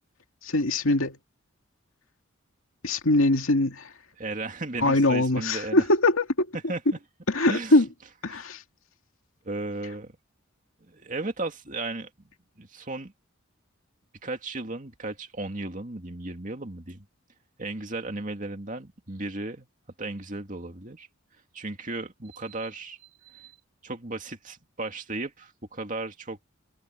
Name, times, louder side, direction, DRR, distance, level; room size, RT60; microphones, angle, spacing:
voice 1, 0.4-1.2 2.8-3.9 4.8-6.5 7.3-7.9 8.2-8.6, left 2 dB, 80° left, 2.2 m, -22 dB
voice 2, 4.2-5.9 6.7-7.0 7.5-7.8 8.3-8.4 9.4-10.2 10.8-12.3 12.6-13.1 14.2-17.1 17.6-19.7 20.0-21.1 21.5-23.6 23.8-26.4, right 2 dB, 40° right, 2.4 m, -35 dB
head